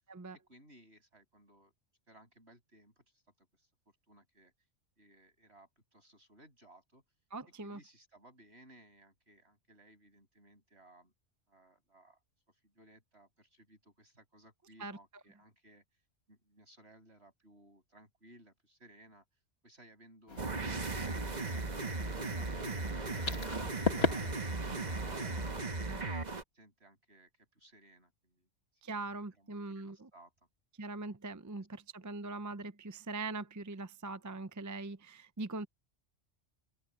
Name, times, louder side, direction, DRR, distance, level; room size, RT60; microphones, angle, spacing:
voice 1, 0.3-1.7 2.1-3.7 4.1-4.5 5.0-7.0 7.6-11.1 11.5-12.2 12.5-15.8 16.3-19.2 19.6-20.4 21.4-26.2 26.5-28.5 28.8-28.9 29.3-30.3 31.6-31.7, right 1 dB, 60° right, 8.3 m, -61 dB
voice 2, 7.3-7.8 14.8-15.0 25.9-26.0 28.8-30.1 30.8-35.7, right 3 dB, 20° right, 0.5 m, -41 dB
sound 1, 20.3-25.6, left 4 dB, 55° left, 2.1 m, -38 dB
sound 2, 20.4-26.4, right 3 dB, 35° right, 1.5 m, -37 dB
open air
omnidirectional pair, 1.2 m